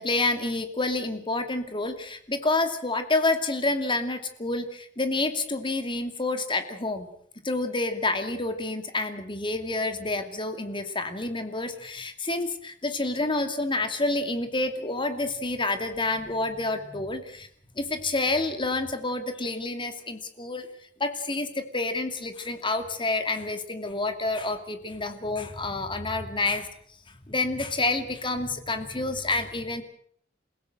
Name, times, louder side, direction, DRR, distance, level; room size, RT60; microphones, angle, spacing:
voice 1, 0.0-7.1 7.4-17.5 17.8-20.7 21.0-26.7 27.3-29.8, left 2 dB, 25° left, 8 dB, 2.5 m, -28 dB
29.0 x 16.5 x 7.8 m, 0.63 s
head